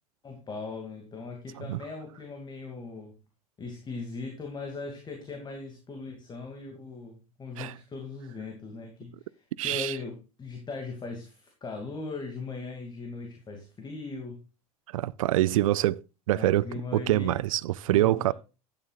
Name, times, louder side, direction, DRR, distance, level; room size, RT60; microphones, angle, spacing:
voice 1, 0.2-3.1 3.6-14.4 16.3-17.4 17.9-18.3, left 3 dB, 20° left, 2.6 m, -39 dB
voice 2, 9.6-10.0 14.9-18.3, right 15 dB, 60° right, 0.4 m, -26 dB
12.5 x 9.9 x 2.5 m
figure-of-eight pair, 75°, 20 cm